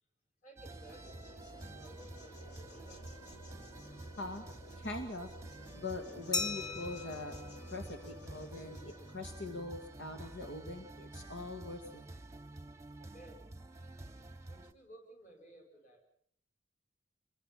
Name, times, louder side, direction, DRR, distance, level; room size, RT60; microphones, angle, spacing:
voice 1, 0.4-1.2 1.7-3.1 13.0-13.4 14.4-16.0, right 2 dB, 40° left, 3 dB, 7.3 m, -57 dB
sound 1, 0.6-14.7, right 2 dB, 15° right, 0.9 m, -50 dB
sound 2, 0.7-9.2, equal, 60° left, 4.2 m, -54 dB
voice 2, 4.8-5.3 5.7-7.4 7.7-12.1, left 2 dB, 80° left, 5 dB, 2.2 m, -42 dB
Glass, 6.3-8.8, left 3 dB, 20° left, 0.9 m, -40 dB
27.5 x 23.0 x 5.9 m, 0.65 s
head